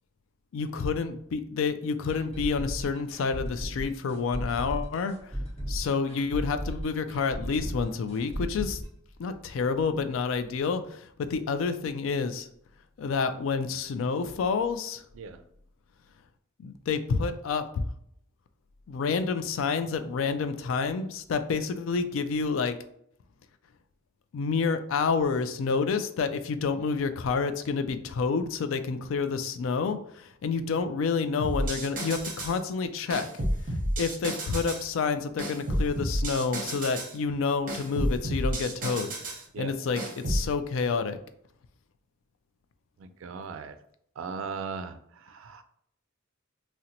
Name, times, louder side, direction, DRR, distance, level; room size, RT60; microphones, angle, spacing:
voice 1, 0.5-5.4 5.7-8.8 9.2-12.5 13.0-15.0 16.6-17.9 18.9-22.8 24.3-33.3 34.0-39.1 39.6-41.2, left 5 dB, 75° left, 10 dB, 0.3 m, -29 dB
sound 1, 2.1-9.8 10.1-10.2 10.6-10.7, equal, 30° left, 1.0 m, -35 dB
sound 2, 31.4-32.6 33.1-34.9 35.4-37.1 37.7-39.4 40.0-40.5, right 1 dB, 45° right, 0.7 m, -31 dB
voice 2, 43.0-43.7 44.2-45.6, right 5 dB, 70° right, 10 dB, 0.4 m, -38 dB
3.8 x 2.1 x 2.8 m, 0.69 s
head